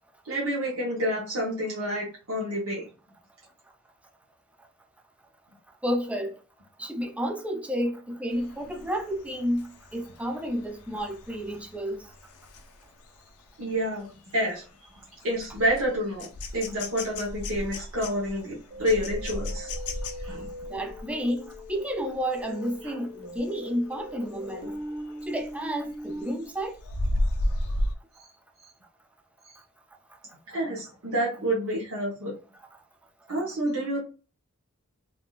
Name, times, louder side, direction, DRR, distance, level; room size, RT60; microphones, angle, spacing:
voice 1, 0.2-2.9 13.6-14.1 14.3-14.6 15.2-16.3 16.5-19.7 20.2-20.5 22.8-22.9 28.6-28.7 29.4-29.6 30.5-32.3 33.3-34.0, equal, 65° right, 1.0 m, -28 dB
voice 2, 5.8-6.3 6.8-12.0 20.7-24.7 25.3-26.8, equal, 5° right, 0.4 m, -31 dB
sound 1, 8.3-22.9 23.3-23.6 23.9-25.6 26.0-28.0, left 1 dB, 85° left, 0.6 m, -35 dB
sound 2, 18.7-26.2, equal, 25° right, 0.9 m, -40 dB
3.6 x 2.5 x 2.3 m
head